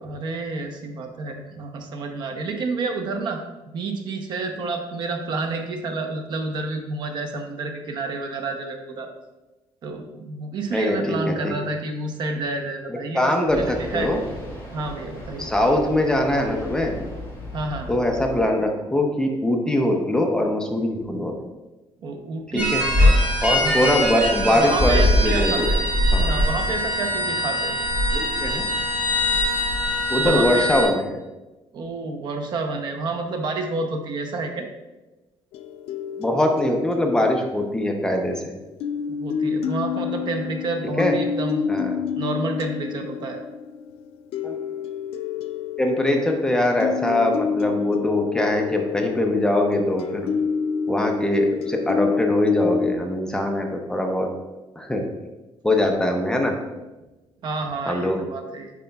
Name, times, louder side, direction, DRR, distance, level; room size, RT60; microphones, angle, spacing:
voice 1, 0.0-3.4 3.7-9.1 9.8-14.1 14.7-15.5 17.5-17.9 22.0-23.2 23.6-25.8 26.2-27.7 30.1-30.9 31.7-34.7 39.1-41.7 42.2-43.4 57.4-58.7, right 3 dB, 50° right, 5 dB, 0.7 m, -29 dB
voice 2, 10.7-11.5 13.1-14.2 15.4-16.9 17.9-21.3 22.5-22.8 23.4-25.7 26.1-26.3 28.1-28.7 30.1-31.0 36.2-38.5 41.0-41.1 41.7-42.0 44.4-44.5 45.8-50.3 50.9-54.3 54.8-55.1 55.6-56.5 57.9-58.2, left 1 dB, 5° left, 2 dB, 0.5 m, -22 dB
sound 1, 13.5-18.5, left 2 dB, 25° left, 1.5 m, -37 dB
sound 2, 22.6-30.8, left 1 dB, 15° right, 1.8 m, -21 dB
sound 3, 35.5-38.4 38.8-53.0, left 6 dB, 90° left, 0.4 m, -28 dB
9.2 x 4.8 x 2.3 m, 1.1 s
cardioid pair, 170°, 10 cm